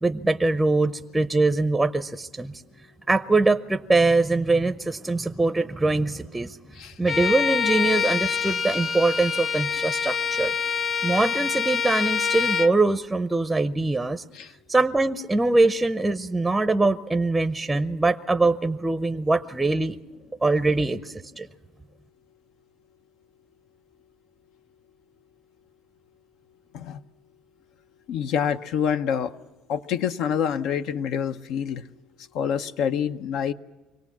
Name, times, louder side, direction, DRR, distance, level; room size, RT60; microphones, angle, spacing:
voice 1, 0.0-2.5 3.1-6.6 7.0-10.5 11.0-14.2 14.7-20.0 20.4-21.5, right 3 dB, 10° right, 10 dB, 0.6 m, -23 dB
Bowed string instrument, 7.1-12.8, left 7 dB, 35° left, 0.6 m, -26 dB
voice 2, 28.1-29.3 29.7-31.9 32.3-33.5, left 8 dB, 70° left, 9 dB, 0.7 m, -26 dB
25.0 x 18.0 x 7.2 m, 1.2 s
cardioid pair, 120°, 0 cm